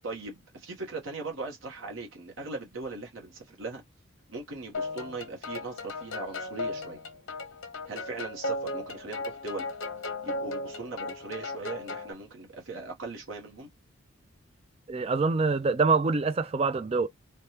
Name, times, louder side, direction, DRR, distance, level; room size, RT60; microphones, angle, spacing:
voice 1, 0.0-3.8 4.3-7.0 7.9-9.7 10.2-13.7, right 3 dB, 75° right, 1.0 m, -39 dB
sound 1, 4.7-12.1, left 2 dB, 85° left, 0.8 m, -36 dB
voice 2, 14.9-17.1, right 4 dB, 30° right, 0.3 m, -25 dB
3.3 x 2.2 x 2.8 m
head